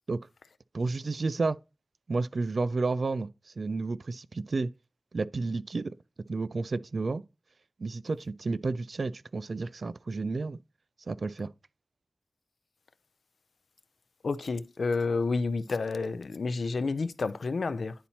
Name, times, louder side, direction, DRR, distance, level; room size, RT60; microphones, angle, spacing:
voice 1, 0.7-1.6 2.1-3.3 3.6-4.7 5.1-5.9 6.3-7.2 7.8-10.6 11.1-11.5, right 3 dB, 65° right, 0.3 m, -31 dB
voice 2, 14.2-17.9, left 4 dB, 80° left, 0.4 m, -30 dB
10.0 x 4.2 x 2.8 m
wide cardioid pair, 60°, 0 cm